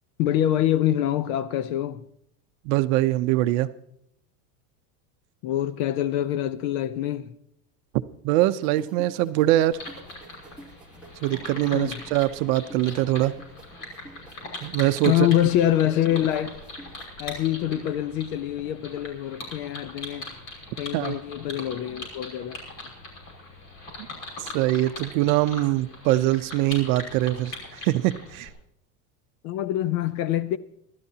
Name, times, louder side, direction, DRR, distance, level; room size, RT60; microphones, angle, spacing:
voice 1, 0.2-2.0 5.4-7.3 11.7-12.0 15.1-16.6 17.2-20.3 20.8-22.6 29.4-30.6, left 12 dB, 60° left, 0.9 m, -25 dB
voice 2, 2.6-3.7 8.2-9.8 11.2-13.3 14.6-15.3 20.9-21.2 24.4-28.5, right 15 dB, 60° right, 0.7 m, -23 dB
sound 1, 8.4-17.1, right 1 dB, ahead, 1.7 m, -48 dB
sound 2, 9.7-28.5, left 2 dB, 40° left, 5.6 m, -41 dB
26.5 x 12.5 x 2.8 m
supercardioid pair, 150°, 49 cm